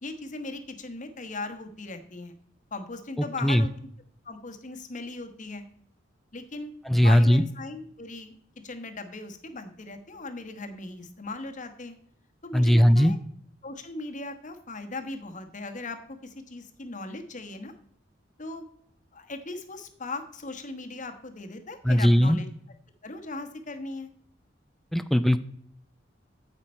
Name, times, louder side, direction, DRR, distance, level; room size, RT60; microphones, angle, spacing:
voice 1, 0.0-2.3 2.7-3.7 4.2-5.6 6.3-6.7 7.0-8.4 8.6-12.0 12.4-13.2 13.6-17.7 18.4-18.7 19.1-22.5 23.0-24.1, left 2 dB, 45° left, 7 dB, 1.2 m, -38 dB
voice 2, 6.9-7.4 12.5-13.1 21.8-22.4 24.9-25.4, equal, ahead, 10 dB, 0.3 m, -19 dB
9.7 x 8.1 x 4.3 m, 0.65 s
head